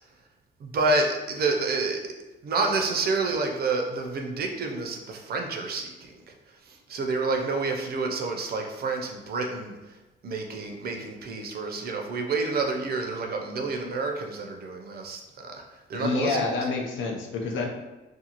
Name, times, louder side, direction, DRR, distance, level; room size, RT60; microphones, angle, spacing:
voice 1, 0.6-2.1 2.4-10.0 10.2-16.7, right 3 dB, 50° right, 3 dB, 0.5 m, -29 dB
voice 2, 15.9-17.7, left 4 dB, 75° left, 1 dB, 0.5 m, -28 dB
2.5 x 2.3 x 2.8 m, 1.1 s
cardioid pair, 90°, 20 cm